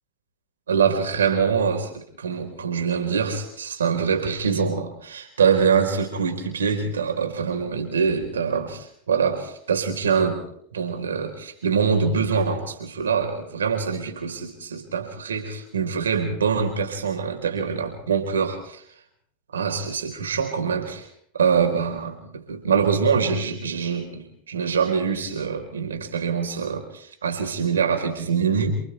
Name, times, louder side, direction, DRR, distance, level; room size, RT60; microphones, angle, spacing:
voice 1, 0.7-10.4 10.7-18.8 19.5-21.1 21.4-28.7, right 6 dB, 85° right, 4 dB, 4.6 m, -24 dB
29.0 x 27.5 x 3.5 m, 0.65 s
hypercardioid pair, 95°, 0 cm